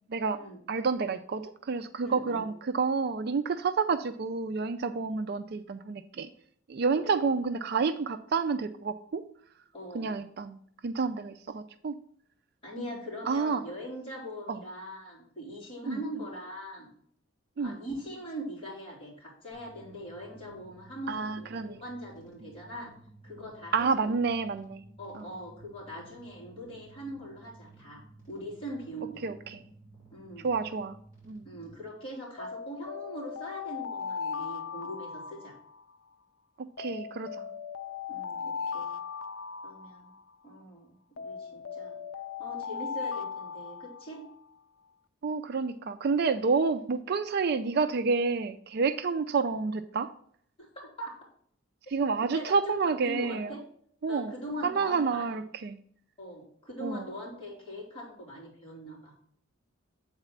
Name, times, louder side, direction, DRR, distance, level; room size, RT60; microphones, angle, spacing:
voice 1, 0.1-0.4 0.7-6.3 6.7-9.2 9.9-10.6 10.8-12.0 13.3-13.6 14.5-14.6 15.9-16.0 17.6-17.8 21.1-21.8 23.7-24.8 29.2-29.6 30.4-31.0 31.3-31.5 36.6-37.5 45.2-50.1 51.9-53.5 54.0-54.3 54.6-55.8 56.8-57.0, right 4 dB, 50° right, 10 dB, 0.4 m, -29 dB
voice 2, 2.0-2.5 7.0-7.3 9.7-10.1 12.6-16.9 17.6-22.9 23.2-24.1 25.0-28.0 28.3-29.3 30.1-30.5 31.4-35.6 38.1-38.9 39.6-40.1 40.4-42.0 42.4-44.3 50.6-51.1 52.2-53.6 54.1-55.3 56.2-59.1, equal, 30° left, -5 dB, 3.0 m, -41 dB
sound 1, 19.5-31.7, right 2 dB, 15° right, 3.8 m, -55 dB
Alarm, 32.4-36.1 36.8-40.5 41.2-44.4, left 6 dB, 80° left, 0.5 m, -38 dB
7.9 x 4.1 x 5.8 m, 0.63 s
head